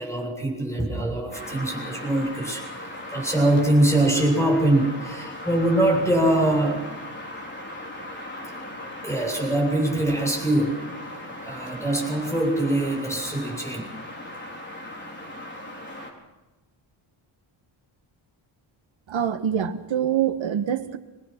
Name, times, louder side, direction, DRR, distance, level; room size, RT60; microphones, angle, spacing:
voice 1, 0.0-6.9 9.0-10.8 11.4-13.8, right 1 dB, 5° left, 1 dB, 7.9 m, -23 dB
sound 1, 1.3-16.1, left 1 dB, 20° left, 4.6 m, -38 dB
voice 2, 19.1-21.0, right 9 dB, 65° right, 8 dB, 1.7 m, -25 dB
24.0 x 19.0 x 6.1 m, 1.1 s
wide cardioid pair, 130°, 49 cm